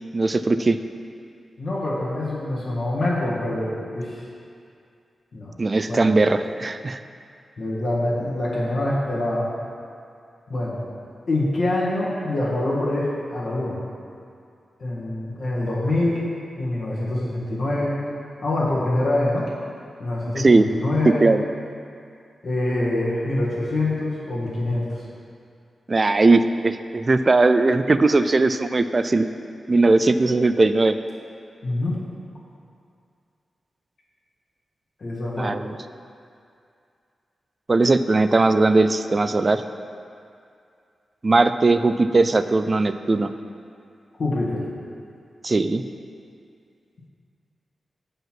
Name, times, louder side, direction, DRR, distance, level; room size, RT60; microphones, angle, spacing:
voice 1, 0.1-0.8 5.6-7.0 20.4-20.6 21.2-21.4 25.9-29.3 29.7-31.0 35.4-35.8 37.7-39.6 41.2-43.3 45.4-45.8, right 3 dB, 35° right, 10 dB, 0.3 m, -19 dB
voice 2, 1.6-4.2 5.3-5.5 5.9-6.3 7.6-9.5 10.5-10.8 11.3-13.8 14.8-16.3 16.6-17.9 18.4-19.5 20.0-21.2 22.4-25.0 31.6-31.9 35.0-35.5 44.2-44.7, left 1 dB, 60° left, -7 dB, 1.7 m, -25 dB
7.5 x 5.4 x 5.9 m, 2.4 s
wide cardioid pair, 120°, 0 cm